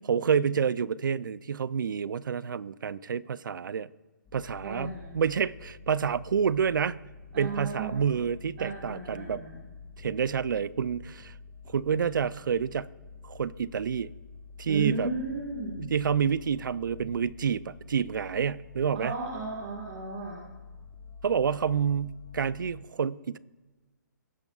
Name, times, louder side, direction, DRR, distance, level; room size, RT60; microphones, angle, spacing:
voice 1, 0.1-3.9 4.3-7.0 7.4-9.4 10.0-11.3 11.7-12.9 13.2-14.1 14.6-15.1 15.8-19.1 21.2-23.4, right 7 dB, 85° right, 0.4 m, -28 dB
sound 1, 4.2-22.8, left 4 dB, 10° left, 1.1 m, -48 dB
voice 2, 4.6-5.1 7.3-8.0 8.6-9.6 14.7-15.9 18.9-20.4, right 3 dB, 30° right, 1.6 m, -35 dB
18.5 x 8.7 x 2.4 m
hypercardioid pair, 170°, 11 cm